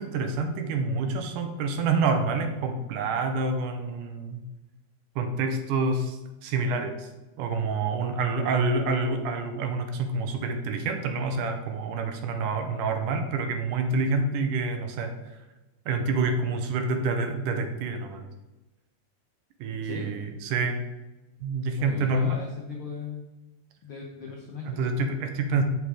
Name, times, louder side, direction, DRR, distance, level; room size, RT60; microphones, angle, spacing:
voice 1, 0.0-4.4 5.2-7.1 7.4-15.1 15.9-18.2 19.6-20.8 21.4-22.4 24.7-25.6, right 3 dB, 75° right, 6 dB, 2.3 m, -27 dB
voice 2, 19.8-20.2 21.7-23.3 23.8-24.9, left 5 dB, 70° left, -1 dB, 1.2 m, -39 dB
8.2 x 5.9 x 4.9 m, 1.1 s
omnidirectional pair, 3.9 m